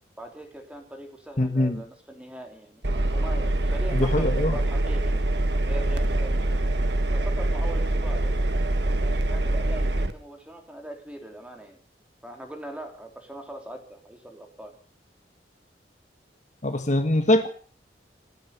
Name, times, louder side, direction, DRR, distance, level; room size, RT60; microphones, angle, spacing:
voice 1, 0.2-2.8 3.1-5.3 5.6-6.6 7.1-8.3 8.8-11.8 12.2-14.8, right 1 dB, 5° right, 3 dB, 3.3 m, -41 dB
voice 2, 1.4-1.8 3.9-4.6 16.6-17.5, left 1 dB, 45° left, 7 dB, 1.5 m, -23 dB
Engine, 2.8-10.1, right 1 dB, 80° right, 1.6 m, -24 dB
27.5 x 9.3 x 5.4 m, 0.43 s
head